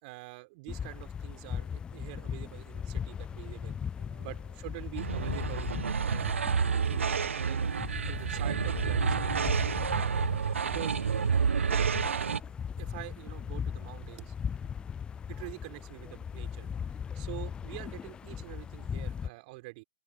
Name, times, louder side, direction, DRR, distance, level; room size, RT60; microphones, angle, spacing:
voice 1, 0.0-5.7 6.1-7.6 8.0-9.4 9.8-10.3 10.6-11.0 11.6-14.3 15.3-16.7 17.1-19.8, right 25 dB, 40° right, 4.9 m, -45 dB
sound 1, 0.7-19.3, left 7 dB, 15° left, 0.5 m, -39 dB
Evil Machine, 5.0-12.4, right 6 dB, 70° right, 1.7 m, -29 dB
open air
figure-of-eight pair, 110°, 7 cm